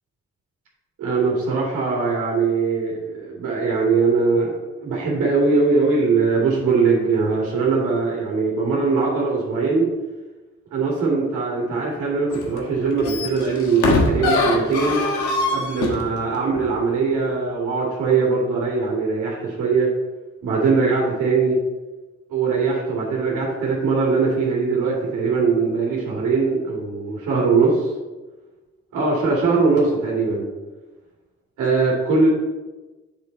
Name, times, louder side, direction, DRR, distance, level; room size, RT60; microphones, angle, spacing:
voice 1, 1.0-4.5 4.8-9.9 10.7-15.0 15.5-19.9 20.4-21.6 22.3-27.9 28.9-30.5 31.6-32.3, right 4 dB, 85° right, -4 dB, 2.5 m, -21 dB
sound 1, 12.3-12.6 12.9-16.1 16.5-16.6, left 2 dB, 90° left, 1.4 m, -22 dB
7.8 x 7.0 x 4.0 m, 1.2 s
cardioid pair, 70°, 29 cm